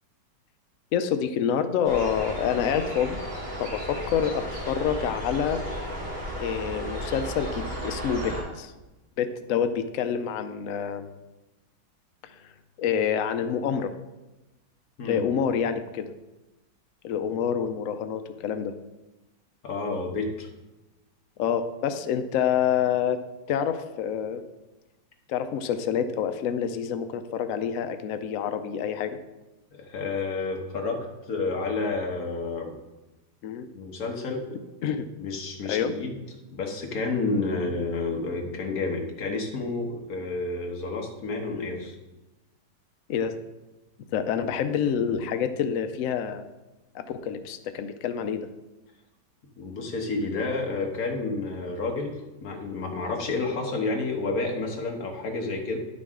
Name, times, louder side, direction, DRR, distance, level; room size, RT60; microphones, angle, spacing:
voice 1, 0.9-3.2 3.6-5.6 6.4-8.7 9.2-11.1 12.2-12.3 12.8-13.9 15.0-16.1 17.0-18.7 21.4-23.2 23.5-24.4 25.3-29.2 33.4-33.7 34.8-35.1 35.6-35.9 37.5-37.7 41.5-41.7 43.1-43.3 44.1-46.5 46.9-48.5 53.5-53.6, left 8 dB, 85° left, 9 dB, 0.7 m, -27 dB
sound 1, 1.8-8.4, equal, 45° right, 3.3 m, -34 dB
voice 2, 19.6-20.5 29.7-31.0 31.3-32.7 33.7-34.4 35.2-36.2 36.5-41.9 49.6-55.8, left 3 dB, 55° left, 1 dB, 1.6 m, -30 dB
10.5 x 6.1 x 3.7 m, 1.1 s
omnidirectional pair, 2.0 m